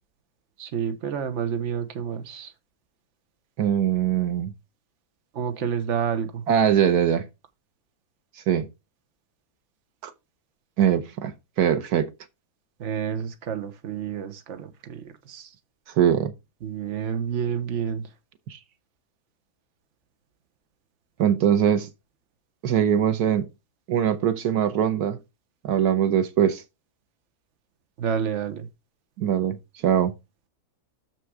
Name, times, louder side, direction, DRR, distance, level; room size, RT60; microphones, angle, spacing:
voice 1, 0.6-2.5 5.3-6.4 12.8-15.5 16.6-18.1 28.0-28.7, right 7 dB, 55° right, 1.3 m, -29 dB
voice 2, 3.6-4.5 6.5-7.3 8.5-8.7 10.0-10.1 10.8-12.1 15.9-16.3 18.5-18.6 21.2-21.9 22.6-23.5 23.9-25.2 25.6-26.6 29.2-30.1, right 9 dB, 85° right, 1.4 m, -22 dB
6.8 x 6.1 x 4.7 m
omnidirectional pair, 1.6 m